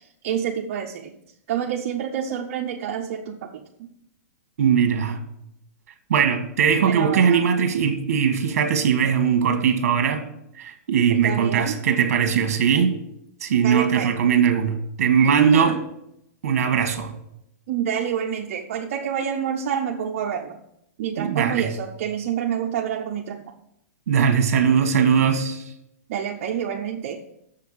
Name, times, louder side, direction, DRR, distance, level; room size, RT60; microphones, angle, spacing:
voice 1, 0.2-1.1 1.5-3.4 6.9-7.4 11.2-11.8 13.6-14.2 15.2-15.7 17.7-20.6 21.0-23.4 26.1-27.2, right 8 dB, 50° right, 0.7 m, -27 dB
voice 2, 4.6-5.2 6.1-10.2 10.6-12.9 13.4-15.8 16.4-17.1 21.2-21.7 24.1-25.7, right 7 dB, 65° right, 1.5 m, -20 dB
7.0 x 5.6 x 7.4 m
hypercardioid pair, 155°, 8 cm